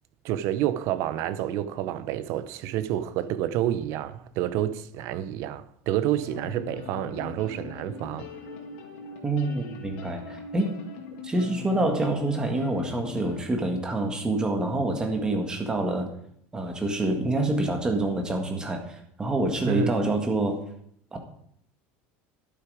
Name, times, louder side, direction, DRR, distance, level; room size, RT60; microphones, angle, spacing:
voice 1, 0.2-8.3 19.7-19.9, right 11 dB, 55° right, 0.7 m, -29 dB
sound 1, 6.2-13.4, left 5 dB, 90° left, 2.4 m, -41 dB
voice 2, 9.2-10.8 11.2-16.1 16.5-20.6 21.1-21.2, right 2 dB, 15° right, 1.7 m, -27 dB
11.5 x 8.3 x 5.0 m
cardioid pair, 160°, 6 cm